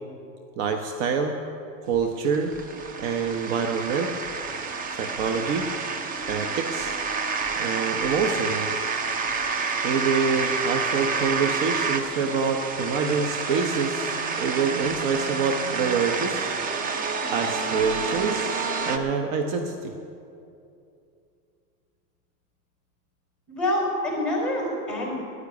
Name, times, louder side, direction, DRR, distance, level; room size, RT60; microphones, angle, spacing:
voice 1, 0.6-1.4 1.9-2.5 3.0-4.1 5.0-5.7 6.3-7.0 7.6-8.7 9.8-16.5 17.3-19.9, right 5 dB, 50° right, 5 dB, 1.1 m, -26 dB
sound 1, 2.0-19.0, right 4 dB, 20° right, 0.6 m, -29 dB
voice 2, 23.5-25.2, left 1 dB, ahead, -2 dB, 4.3 m, -26 dB
10.5 x 10.0 x 9.7 m, 2.6 s
supercardioid pair, 140°, 45 cm